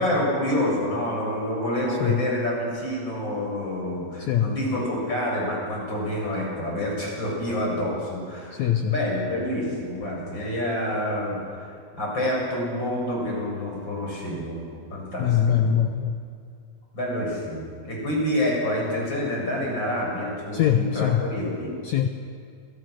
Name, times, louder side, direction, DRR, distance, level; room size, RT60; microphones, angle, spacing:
voice 1, 0.0-11.7 11.9-14.6 14.9-15.7 16.9-21.7, left 1 dB, 30° left, -3 dB, 7.9 m, -28 dB
voice 2, 4.2-4.5 8.5-9.0 15.2-16.2 20.5-21.2 21.8-22.1, left 9 dB, 70° left, 7 dB, 1.9 m, -22 dB
29.0 x 24.5 x 6.5 m, 2.4 s
omnidirectional pair, 4.2 m